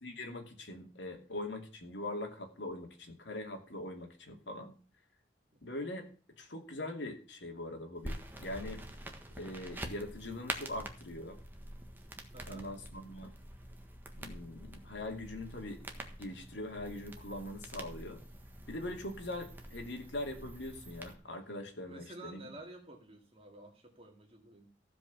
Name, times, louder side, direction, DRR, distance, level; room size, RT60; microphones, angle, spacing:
voice 1, 0.0-4.7 5.6-6.1 6.4-8.8 9.4-11.4 12.5-13.3 14.2-15.8 16.2-18.2 18.7-22.4, left 1 dB, 80° left, 3 dB, 2.7 m, -42 dB
sound 1, 8.0-21.1, right 1 dB, 10° right, 1.5 m, -46 dB
voice 2, 12.3-12.7 21.8-24.7, right 2 dB, 35° right, 3 dB, 2.4 m, -51 dB
15.5 x 5.3 x 7.1 m, 0.39 s
head